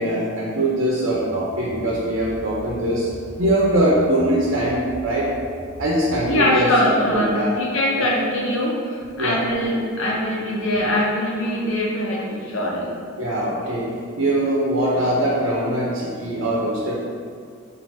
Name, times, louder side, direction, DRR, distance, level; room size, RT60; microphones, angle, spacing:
voice 1, 0.0-3.1 3.4-5.3 5.8-7.5 8.0-8.1 9.2-9.4 13.2-13.9 14.2-17.0, right 1 dB, 80° right, -5 dB, 0.7 m, -22 dB
sound 1, 1.1-6.3, right 1 dB, 25° right, 0.6 m, -40 dB
voice 2, 6.3-12.9, left 1 dB, 85° left, -3 dB, 0.9 m, -22 dB
4.5 x 2.6 x 4.2 m, 2.2 s
head